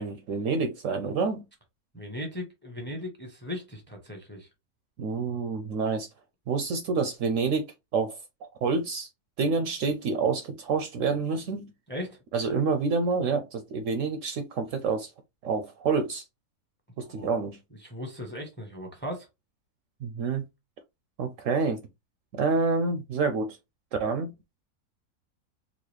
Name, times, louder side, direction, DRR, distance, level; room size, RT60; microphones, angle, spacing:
voice 1, 0.0-1.4 5.0-6.1 6.5-8.2 8.6-9.1 9.4-11.7 12.3-15.1 15.4-16.2 17.0-17.6 20.0-20.4 21.2-21.8 22.3-23.6 24.0-24.3, right 4 dB, 70° right, 0.8 m, -28 dB
voice 2, 1.9-4.5 11.9-12.2 17.0-17.4 17.7-19.3, left 1 dB, 10° left, 0.7 m, -38 dB
4.0 x 2.4 x 3.1 m
omnidirectional pair, 1.6 m